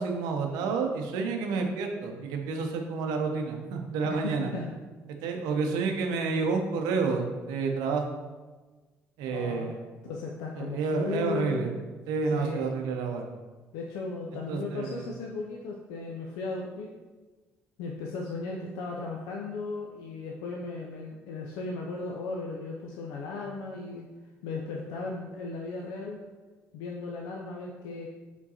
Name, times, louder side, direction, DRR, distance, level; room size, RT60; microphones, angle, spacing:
voice 1, 0.0-4.5 5.2-8.0 9.2-9.8 10.6-11.7 12.1-13.3 14.5-15.1, right 4 dB, 75° right, 3 dB, 0.6 m, -29 dB
voice 2, 4.0-4.7 9.3-9.7 10.1-11.6 12.3-12.6 13.7-16.9 17.8-24.1 24.4-26.2 26.7-28.1, left 4 dB, 80° left, -1 dB, 0.4 m, -36 dB
4.7 x 3.8 x 2.8 m, 1.3 s
hypercardioid pair, 60°, 7 cm